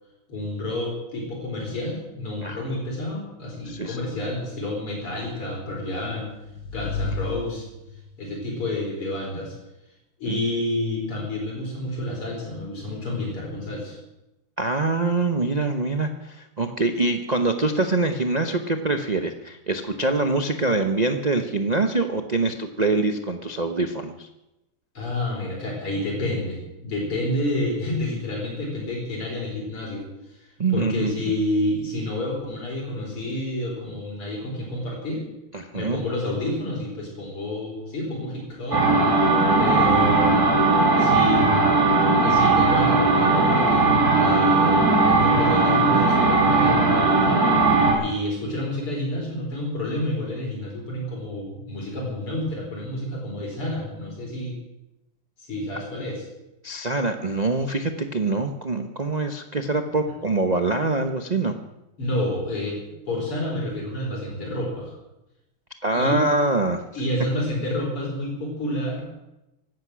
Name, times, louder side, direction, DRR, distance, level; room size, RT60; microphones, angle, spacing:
voice 1, 0.3-6.3 6.7-7.7 8.2-9.6 10.2-14.0 25.0-30.4 30.7-35.2 35.7-38.9 39.2-40.5 41.0-41.7 42.2-47.4 48.0-54.5 55.4-56.3 62.0-64.9 65.9-66.2 67.0-69.3, left 1 dB, 85° left, -2 dB, 5.6 m, -29 dB
voice 2, 3.7-4.0 10.3-10.4 14.6-24.3 30.6-31.3 35.5-36.0 47.9-48.0 56.6-61.5 65.8-66.8, right 3 dB, 70° right, 6 dB, 0.4 m, -24 dB
sound 1, 5.9-8.2, left 5 dB, 65° left, 4.1 m, -33 dB
sound 2, 38.7-47.9, right 3 dB, 40° right, 3.7 m, -18 dB
16.5 x 11.5 x 6.3 m, 0.93 s
omnidirectional pair, 2.4 m